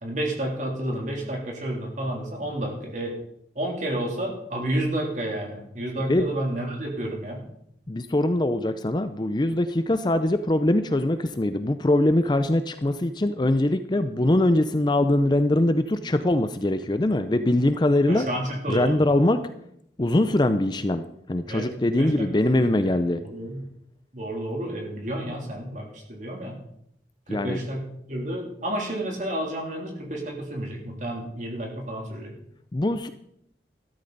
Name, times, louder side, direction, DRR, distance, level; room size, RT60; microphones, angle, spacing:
voice 1, 0.0-3.1 3.5-7.4 18.1-19.0 21.5-21.7 22.0-22.7 23.2-23.6 24.1-26.6 27.3-32.3, right 1 dB, 45° right, 0 dB, 3.1 m, -30 dB
voice 2, 7.9-18.3 18.7-19.4 20.0-21.0 21.3-23.2 27.3-27.6 32.7-33.1, left 1 dB, 25° left, 10 dB, 0.5 m, -22 dB
13.5 x 13.0 x 4.0 m, 0.73 s
head